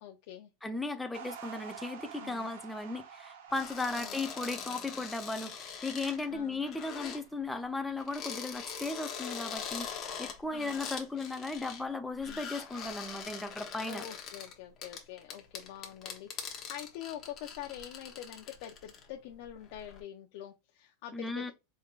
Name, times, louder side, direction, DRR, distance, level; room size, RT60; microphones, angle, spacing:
voice 1, 0.0-0.5 2.2-2.5 4.0-4.2 6.3-6.6 10.5-10.9 12.3-12.4 13.9-21.5, left 11 dB, 55° left, 0.6 m, -45 dB
voice 2, 0.6-14.0 21.1-21.5, left 3 dB, 5° left, 0.5 m, -36 dB
sound 1, 1.1-7.6, right 7 dB, 70° right, 0.9 m, -50 dB
sound 2, 3.5-7.2 8.0-11.9 12.2-19.1 19.4-20.0, left 7 dB, 30° left, 0.9 m, -43 dB
4.5 x 3.4 x 2.4 m
supercardioid pair, 160°, 0 cm